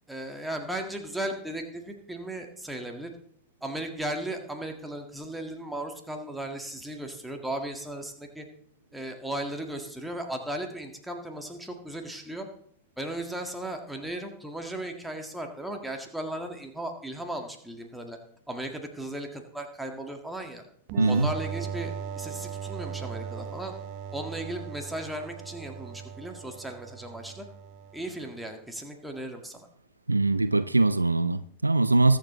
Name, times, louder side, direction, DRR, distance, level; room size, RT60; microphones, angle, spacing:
voice 1, 0.1-3.1 3.6-8.4 8.9-12.5 13.0-18.2 18.5-20.6 21.0-23.7 24.1-27.4 27.9-29.7, right 1 dB, 5° right, 1.8 m, -36 dB
sound 1, 20.9-28.3, right 8 dB, 45° right, 0.7 m, -38 dB
voice 2, 21.0-21.3 30.1-32.2, right 2 dB, 80° right, 0.4 m, -22 dB
21.5 x 7.3 x 3.2 m
figure-of-eight pair, 90°, 0 cm